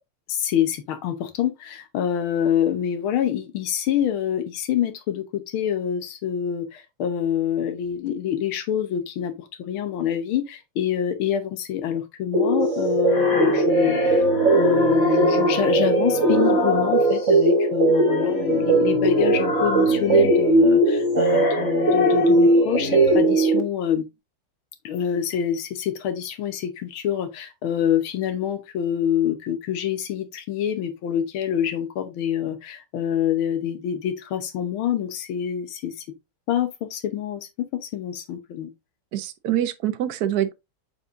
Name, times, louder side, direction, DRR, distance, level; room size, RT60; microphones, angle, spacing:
voice 1, 0.3-14.3 14.5-24.1 24.8-35.9 36.5-38.7, left 9 dB, 75° left, 1.8 m, -26 dB
sound 1, 12.3-23.6, right 2 dB, 50° right, 1.0 m, -20 dB
sound 2, 12.6-17.4 17.9-23.2, left 4 dB, 40° left, 2.0 m, -28 dB
voice 2, 39.1-40.5, right 11 dB, 75° right, 0.9 m, -25 dB
8.1 x 4.5 x 2.6 m
omnidirectional pair, 2.4 m